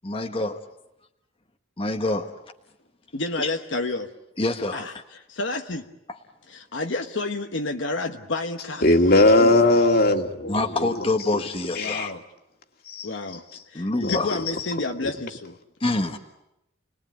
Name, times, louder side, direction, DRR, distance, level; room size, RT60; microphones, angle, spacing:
voice 1, 0.0-0.6 1.8-2.3 3.4-3.5 4.4-4.9 10.5-12.1 13.7-14.4 15.8-16.2, left 2 dB, 30° left, 1.3 m, -26 dB
voice 2, 3.1-4.1 4.7-5.9 6.5-8.9 9.4-10.0 11.8-12.2 13.0-13.4 13.7-15.6, left 2 dB, 70° left, 1.2 m, -30 dB
voice 3, 8.8-10.9 11.8-12.1 12.9-13.1 14.0-14.2, left 2 dB, 50° left, 2.3 m, -19 dB
29.5 x 20.5 x 9.2 m
head